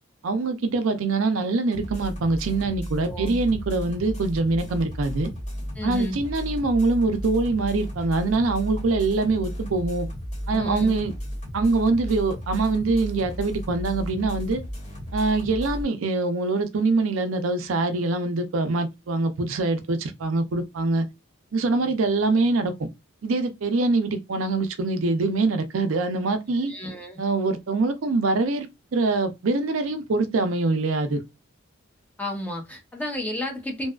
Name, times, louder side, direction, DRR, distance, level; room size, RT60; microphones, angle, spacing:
voice 1, 0.2-5.3 5.8-10.1 10.5-11.1 11.5-14.6 15.1-21.1 21.5-22.7 23.2-26.7 27.2-31.2, right 3 dB, 70° right, 0.5 m, -24 dB
sound 1, 1.7-15.8, equal, 35° left, 1.1 m, -34 dB
voice 2, 3.0-3.4 5.8-6.2 10.5-11.0 26.7-27.2 32.2-33.9, left 1 dB, 5° left, 0.6 m, -32 dB
2.6 x 2.2 x 2.3 m
head